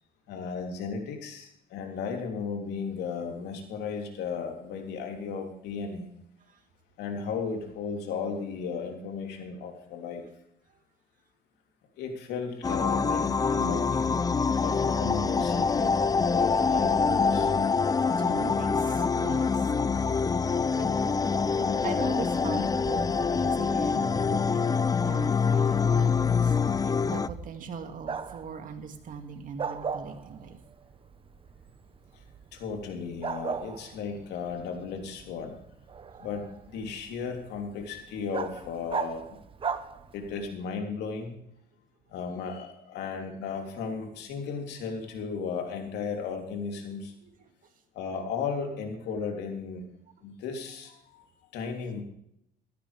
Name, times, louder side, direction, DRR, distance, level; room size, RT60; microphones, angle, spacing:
voice 1, 0.3-6.1 7.0-10.2 12.0-15.9 16.3-17.5 32.1-32.2 32.5-35.6 36.2-39.3 40.1-41.4 42.1-47.1 47.9-49.9 50.2-52.0, left 5 dB, 80° left, 2 dB, 3.3 m, -35 dB
sound 1, 12.6-27.3, left 5 dB, 20° left, 0.5 m, -25 dB
voice 2, 18.2-21.3 21.5-24.6 25.0-30.6 47.2-47.3, right 6 dB, 50° right, 5 dB, 2.4 m, -41 dB
Bark, 21.2-40.5, right 6 dB, 30° right, 1.0 m, -41 dB
15.5 x 13.5 x 3.5 m, 0.74 s
cardioid pair, 110°, 17 cm